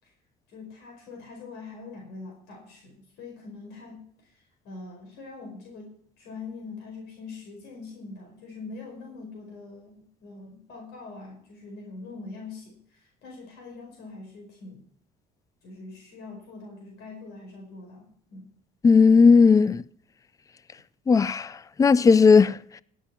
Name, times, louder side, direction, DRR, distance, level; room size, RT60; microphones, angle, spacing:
voice 1, 0.5-14.8 15.6-18.5, left 3 dB, 85° left, 4.8 m, -43 dB
voice 2, 18.8-19.8 21.1-21.5 21.8-22.6, left 5 dB, 20° left, 0.4 m, -16 dB
17.5 x 7.5 x 5.7 m
cardioid pair, 110°, 17 cm